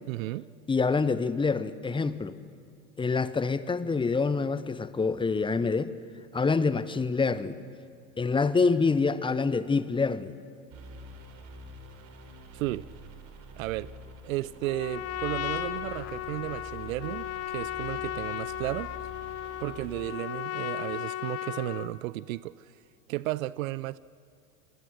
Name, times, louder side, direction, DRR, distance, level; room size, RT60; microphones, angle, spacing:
voice 1, 0.1-0.5 12.5-12.9 13.6-13.9 14.2-18.9 19.6-22.7 23.1-24.0, right 17 dB, 65° right, 0.6 m, -34 dB
voice 2, 0.7-2.4 3.0-5.9 6.3-7.6 8.2-10.3, left 4 dB, 10° left, 0.8 m, -26 dB
sound 1, 10.7-20.1, equal, 40° right, 3.7 m, -46 dB
Trumpet, 14.6-22.0, left 12 dB, 35° left, 1.1 m, -35 dB
28.0 x 22.0 x 6.5 m
hypercardioid pair, 95°, 43 cm